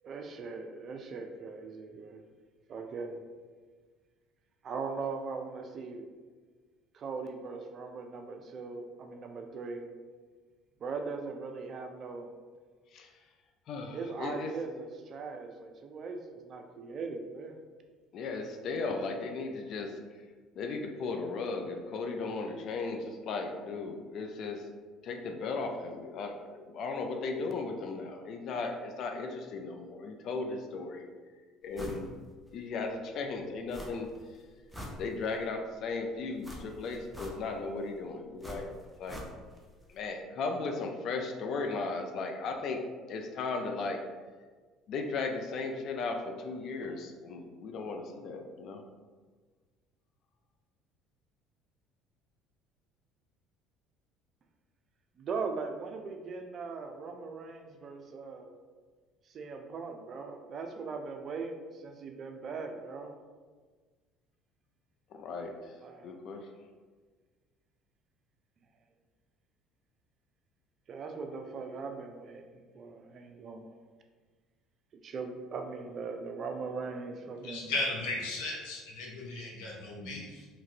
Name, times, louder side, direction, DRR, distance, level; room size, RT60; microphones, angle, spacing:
voice 1, 0.0-2.2 2.7-3.2 4.6-6.1 6.9-9.9 10.8-12.3 13.9-17.5 55.2-58.5 59.3-63.1 65.8-66.1 70.9-73.8 75.0-77.7, right 4 dB, 50° right, 5 dB, 0.4 m, -40 dB
voice 2, 13.7-14.5 18.1-20.0 20.6-24.7 25.0-31.1 31.6-32.1 32.5-34.1 35.0-38.7 39.0-39.2 39.9-42.8 43.1-44.0 44.9-48.8 65.1-65.7 66.0-66.5, left 3 dB, 60° left, 4 dB, 0.4 m, -36 dB
sound 1, 31.7-32.1 32.5-32.6 33.7-34.2 34.5-35.5 36.4-37.7 38.4-39.7 39.9-40.0, left 1 dB, ahead, 0.7 m, -44 dB
voice 3, 77.4-80.5, left 2 dB, 75° left, -2 dB, 0.8 m, -36 dB
2.9 x 2.5 x 2.8 m, 1.5 s
hypercardioid pair, 75°, 0 cm